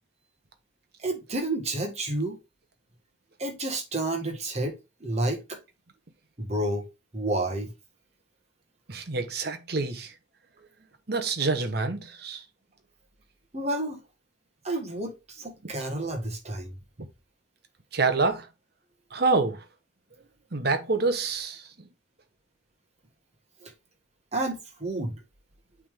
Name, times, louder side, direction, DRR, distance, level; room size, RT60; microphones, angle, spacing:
voice 1, 1.0-2.4 3.4-5.6 6.4-7.7 13.5-14.0 14.6-16.7 23.6-23.7 24.3-25.2, right 1 dB, 35° right, 1.6 m, -30 dB
voice 2, 8.9-10.1 11.1-12.4 17.0-17.1 17.9-18.5 19.1-19.6 20.5-21.6, right 3 dB, 55° right, 1.0 m, -27 dB
8.4 x 3.7 x 3.5 m
head